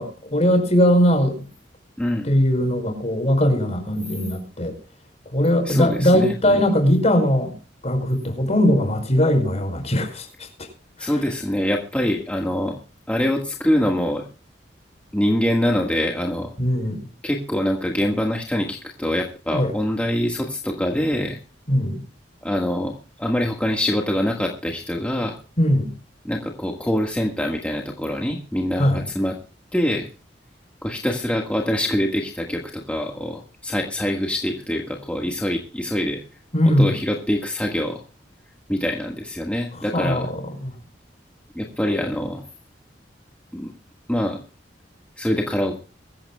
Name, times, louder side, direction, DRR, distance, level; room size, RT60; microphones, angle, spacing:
voice 1, 0.0-1.5 2.2-4.8 5.3-7.5 7.8-10.3 11.0-11.1 16.6-17.1 19.5-19.7 21.7-22.0 25.6-25.9 28.8-29.0 36.5-37.0 39.7-40.7, equal, 40° left, 5 dB, 5.3 m, -20 dB
voice 2, 2.0-2.3 5.6-6.3 11.0-12.8 13.1-14.2 15.1-16.5 17.2-21.4 22.4-25.4 26.2-29.3 29.7-30.1 30.8-36.2 36.8-38.0 38.7-40.3 41.5-42.4 43.5-43.7 44.1-44.4 45.2-45.8, left 1 dB, 10° left, 0 dB, 1.6 m, -24 dB
23.0 x 15.0 x 2.2 m, 0.35 s
head